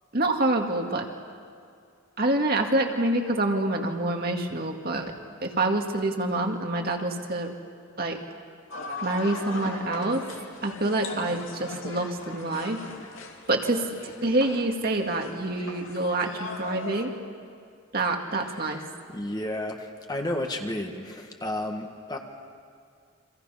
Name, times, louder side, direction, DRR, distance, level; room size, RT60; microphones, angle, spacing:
voice 1, 0.1-1.1 2.2-5.1 5.4-7.5 8.0-8.2 9.0-10.3 10.6-12.8 13.5-17.1 17.9-18.8, right 2 dB, 45° right, 2 dB, 2.0 m, -26 dB
sound 1, 8.7-17.1, left 3 dB, 75° left, 2.6 m, -39 dB
voice 2, 18.4-22.2, left 1 dB, 20° left, 3 dB, 1.6 m, -33 dB
30.0 x 25.0 x 5.7 m, 2.2 s
head